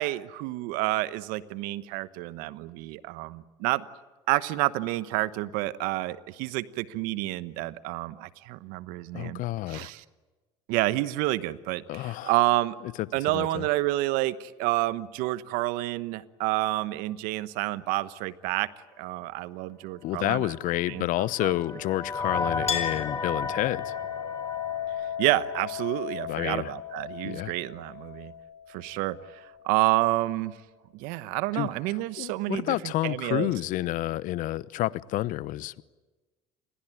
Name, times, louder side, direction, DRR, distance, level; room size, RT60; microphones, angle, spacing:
voice 1, 0.0-3.8 4.3-10.0 10.7-12.8 13.1-18.7 19.0-21.8 25.2-28.3 28.7-30.5 30.9-33.5, right 18 dB, 75° right, 1.1 m, -29 dB
voice 2, 9.1-9.9 11.9-12.3 13.3-13.7 20.0-24.0 26.3-26.7 27.2-27.5 31.5-31.7 32.2-35.8, left 16 dB, 65° left, 0.9 m, -29 dB
sound 1, 20.6-26.0, left 3 dB, 25° left, 2.6 m, -35 dB
Chink clink, 22.7-29.7, left 9 dB, 45° left, 4.6 m, -36 dB
28.5 x 21.5 x 9.1 m
hypercardioid pair, 70°, 15 cm